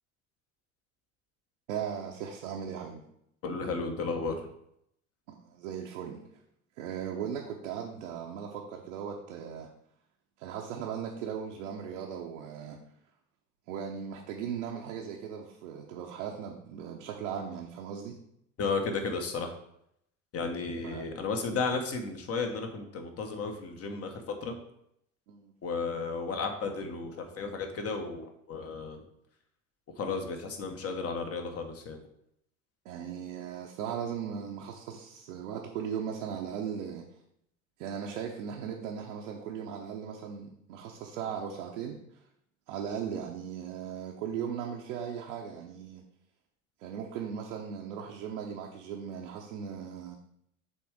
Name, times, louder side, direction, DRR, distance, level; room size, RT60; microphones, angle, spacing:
voice 1, 1.7-3.0 5.3-6.2 6.8-9.7 10.4-12.8 13.7-18.2 20.8-21.1 25.3-25.5 32.8-37.1 37.8-42.0 42.7-46.0 46.8-50.2, right 7 dB, 65° right, 0 dB, 1.0 m, -38 dB
voice 2, 3.4-4.5 18.6-19.5 20.3-24.6 25.6-29.0 30.0-32.0, left 4 dB, 35° left, 5 dB, 1.3 m, -33 dB
7.3 x 3.5 x 4.9 m, 0.75 s
figure-of-eight pair, 65°, 40 cm